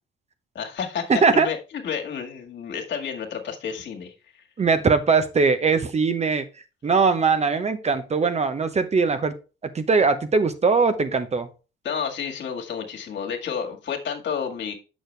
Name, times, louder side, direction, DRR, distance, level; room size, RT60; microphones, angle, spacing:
voice 1, 0.6-1.6 1.8-4.1 11.8-14.7, left 7 dB, 65° left, 1.8 m, -30 dB
voice 2, 1.1-1.5 4.6-6.4 6.8-9.3 9.7-11.5, right 4 dB, 35° right, 0.9 m, -20 dB
6.6 x 6.3 x 3.3 m
cardioid pair, 90°, 20 cm